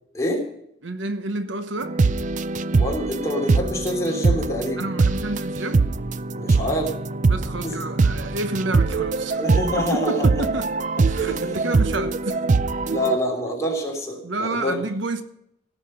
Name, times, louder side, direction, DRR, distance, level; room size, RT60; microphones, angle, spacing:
voice 1, 0.8-2.0 4.8-5.9 7.3-9.5 9.9-10.7 11.1-12.5 14.2-15.2, right 2 dB, 65° right, 1.1 m, -29 dB
sound 1, 1.8-13.2, right 3 dB, 40° right, 0.4 m, -23 dB
voice 2, 2.7-4.9 6.3-6.9 7.6-7.8 9.4-10.3 11.2-11.7 12.9-14.8, left 1 dB, 15° left, 3.3 m, -26 dB
17.0 x 6.7 x 6.5 m
head